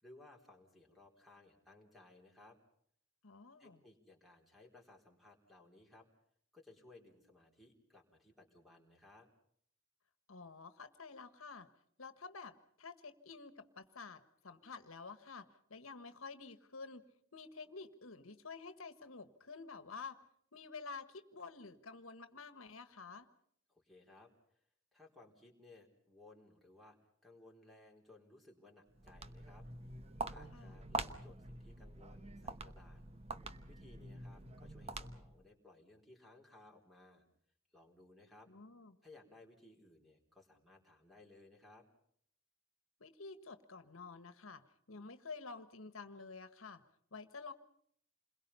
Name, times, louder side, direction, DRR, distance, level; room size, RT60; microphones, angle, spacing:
voice 1, 0.0-2.6 3.6-6.1 6.5-9.3 23.7-24.6 24.9-27.0 27.2-29.7 30.2-33.0 33.7-37.2 37.7-38.5 39.0-41.8, left 2 dB, ahead, 2 dB, 4.2 m, -61 dB
voice 2, 3.2-3.8 10.3-11.7 12.0-17.0 17.3-20.2 20.5-23.3 30.5-30.8 38.5-39.0 43.0-46.8 47.1-47.5, left 4 dB, 80° left, 10 dB, 1.5 m, -50 dB
Walk footsteps, 28.9-35.4, right 3 dB, 30° right, 1.0 m, -46 dB
28.5 x 22.0 x 5.6 m, 0.66 s
head